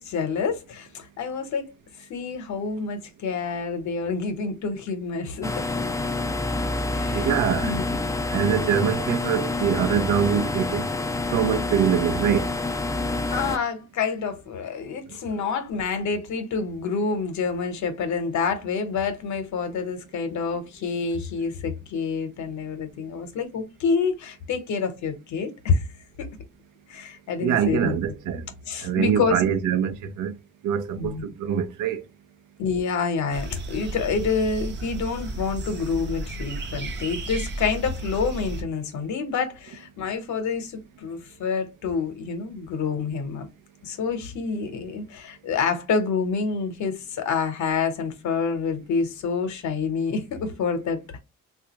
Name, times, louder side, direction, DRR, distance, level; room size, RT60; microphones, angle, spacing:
voice 1, 0.0-1.7 2.1-5.5 6.9-8.1 13.3-25.9 26.2-26.3 26.9-27.9 28.7-29.4 30.9-31.3 32.6-43.5 43.8-51.0, left 5 dB, 70° left, 0.9 m, -27 dB
sound 1, 5.4-13.6, left 2 dB, 10° left, 0.3 m, -27 dB
voice 2, 7.1-7.7 8.3-10.9 11.3-12.5 15.3-15.4 27.4-28.5 28.8-30.4 30.6-32.0, right 8 dB, 85° right, 0.6 m, -24 dB
sound 2, 33.3-38.6, right 2 dB, 35° right, 0.7 m, -33 dB
3.3 x 2.4 x 2.9 m
cardioid pair, 90°, 30 cm